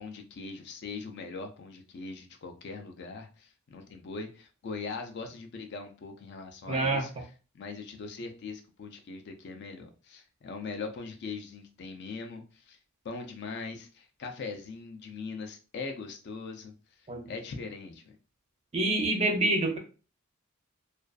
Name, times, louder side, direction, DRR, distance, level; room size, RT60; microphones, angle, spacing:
voice 1, 0.0-7.1 7.5-12.8 13.0-16.7 17.2-18.1, left 4 dB, 50° left, 4 dB, 0.4 m, -41 dB
voice 2, 6.7-7.1 17.1-17.2 18.7-19.8, right 2 dB, 30° right, 4 dB, 0.4 m, -26 dB
2.4 x 2.2 x 2.3 m, 0.35 s
head